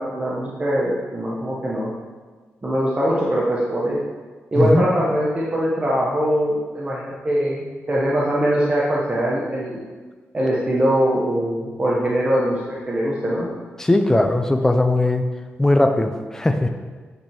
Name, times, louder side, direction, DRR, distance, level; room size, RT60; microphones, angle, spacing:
voice 1, 0.0-1.9 2.6-4.0 4.5-9.8 10.3-13.5, equal, 25° right, -6 dB, 1.3 m, -22 dB
voice 2, 4.6-4.9 13.8-15.2 15.6-16.7, left 2 dB, 10° left, 6 dB, 0.6 m, -18 dB
9.1 x 5.2 x 4.5 m, 1.4 s
wide cardioid pair, 125°, 5 cm